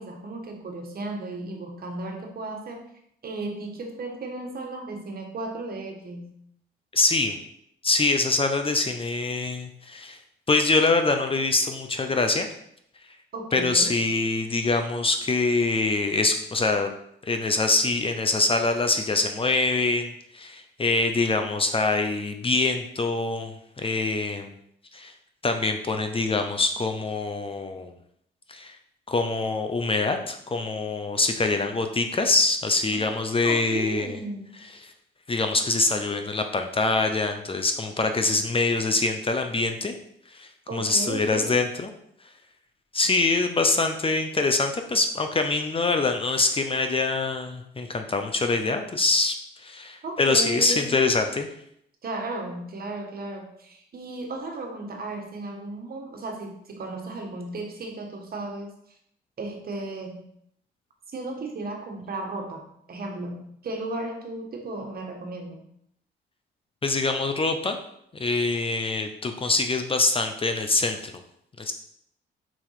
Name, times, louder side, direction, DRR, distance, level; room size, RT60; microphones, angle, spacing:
voice 1, 0.0-2.8 3.2-6.3 13.3-14.0 33.0-33.1 33.4-34.6 40.7-41.6 50.0-51.0 52.0-58.7 59.4-60.3 61.1-65.6, right 2 dB, 50° right, 2 dB, 1.6 m, -35 dB
voice 2, 6.9-7.4 7.8-10.2 10.5-12.5 13.5-16.9 17.2-24.5 24.9-25.1 25.4-27.9 28.5-28.8 29.1-34.2 34.8-34.9 35.3-39.9 40.3-41.9 42.9-51.5 66.8-67.8 68.1-71.1 71.6-71.7, left 3 dB, 25° left, 6 dB, 0.8 m, -24 dB
5.1 x 4.4 x 5.7 m, 0.71 s
cardioid pair, 90°, 20 cm